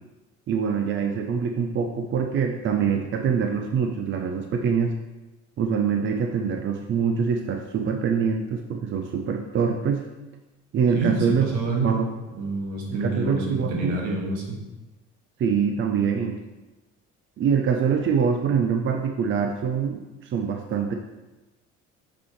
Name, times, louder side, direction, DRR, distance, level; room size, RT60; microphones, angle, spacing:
voice 1, 0.5-4.9 5.6-10.0 10.7-11.5 11.8-12.0 13.0-14.0 15.4-16.4 17.4-20.9, right 6 dB, 40° right, 4 dB, 0.6 m, -24 dB
voice 2, 10.9-12.0 12.4-14.6, right 3 dB, 80° right, -1 dB, 1.8 m, -27 dB
6.1 x 6.0 x 3.1 m, 1.1 s
supercardioid pair, 95°, 29 cm